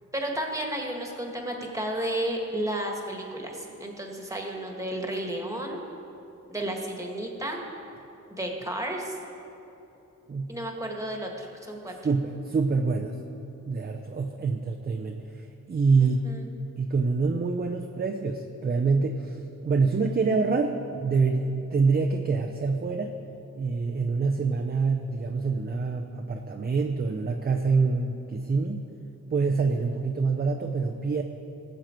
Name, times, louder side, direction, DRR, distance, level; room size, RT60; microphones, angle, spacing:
voice 1, 0.1-5.8 6.5-7.6 8.3-9.2 10.5-11.9 16.0-16.5, right 1 dB, 10° right, 1 dB, 1.7 m, -32 dB
voice 2, 12.0-13.1 13.7-15.2 15.7-16.2 16.8-19.4 19.6-23.1 23.6-28.8 29.3-31.2, right 4 dB, 30° right, 3 dB, 0.6 m, -26 dB
18.5 x 7.7 x 4.5 m, 3.0 s
wide cardioid pair, 110°, 32 cm